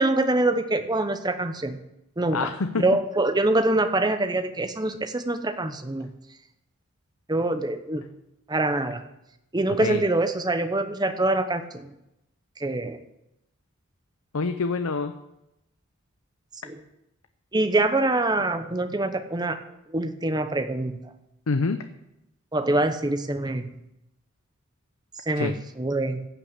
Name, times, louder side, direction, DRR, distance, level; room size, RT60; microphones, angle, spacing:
voice 1, 0.0-1.8 2.2-6.1 7.3-8.1 8.5-9.0 9.5-11.9 12.6-13.0 16.6-16.8 17.5-19.6 19.9-21.0 22.5-23.7 25.3-26.3, right 2 dB, 20° right, 8 dB, 0.8 m, -25 dB
voice 2, 2.3-2.8 9.8-10.0 14.3-15.2 21.5-21.9 25.4-25.5, left 4 dB, 85° left, 8 dB, 0.7 m, -26 dB
15.0 x 6.1 x 8.1 m, 0.88 s
head